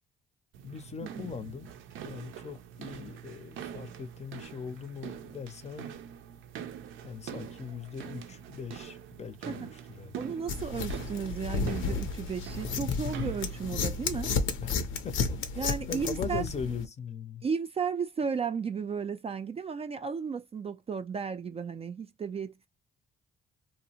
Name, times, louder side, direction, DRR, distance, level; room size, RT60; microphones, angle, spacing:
sound 1, 0.5-14.0, right 8 dB, 85° right, 0.5 m, -44 dB
voice 1, 0.6-1.7 2.0-6.0 7.0-10.2 14.6-17.4, left 6 dB, 35° left, 0.5 m, -40 dB
voice 2, 10.1-14.3 15.6-16.4 17.4-22.7, right 6 dB, 30° right, 0.3 m, -34 dB
sound 2, 10.5-16.9, left 5 dB, 80° left, 0.6 m, -32 dB
2.7 x 2.0 x 2.8 m
cardioid pair, 90°, 20 cm